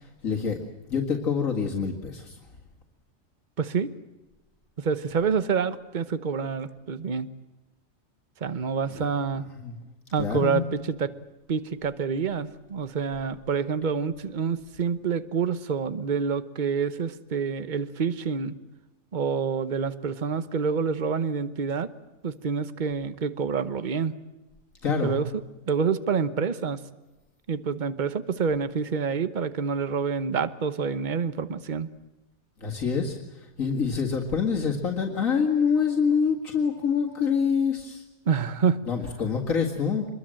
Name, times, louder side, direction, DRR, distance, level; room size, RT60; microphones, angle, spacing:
voice 1, 0.2-0.6 0.9-2.4 8.9-9.1 9.6-9.7 10.2-10.7 24.8-25.2 32.6-33.2 33.6-38.0 38.9-40.1, left 6 dB, 75° left, 0 dB, 2.4 m, -26 dB
voice 2, 3.6-3.9 4.8-7.3 8.4-9.5 10.1-11.1 11.5-18.5 19.1-21.9 22.2-24.1 25.0-25.3 25.7-26.8 27.5-31.9 38.3-38.8, right 6 dB, 40° right, 13 dB, 1.1 m, -27 dB
25.0 x 22.0 x 7.7 m, 1.0 s
omnidirectional pair, 1.4 m